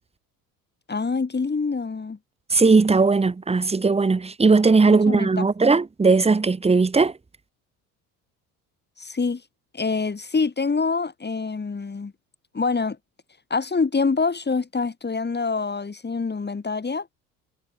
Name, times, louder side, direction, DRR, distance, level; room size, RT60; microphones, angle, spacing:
voice 1, 0.9-2.2 4.9-5.8 9.0-9.4 9.7-12.1 12.5-13.0 13.5-17.1, left 4 dB, 20° left, 7.3 m, -26 dB
voice 2, 2.5-7.1, right 4 dB, 15° right, 1.3 m, -18 dB
figure-of-eight pair, 60°, 45 cm